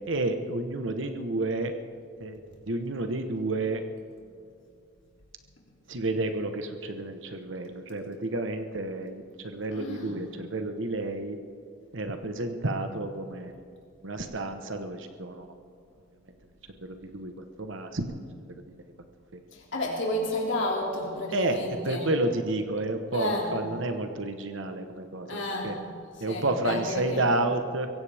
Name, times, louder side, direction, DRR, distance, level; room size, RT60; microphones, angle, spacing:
voice 1, 0.1-1.7 2.2-2.4 2.7-3.8 5.9-11.4 11.9-13.5 14.0-15.5 16.8-17.3 17.6-18.1 19.3-19.4 21.3-25.7 26.2-27.9, right 2 dB, 70° right, 7 dB, 1.2 m, -30 dB
voice 2, 9.7-10.2 19.5-22.1 23.1-23.5 25.3-25.8 26.3-27.2, left 1 dB, 65° left, -2 dB, 2.9 m, -31 dB
23.5 x 15.5 x 3.6 m, 2.3 s
head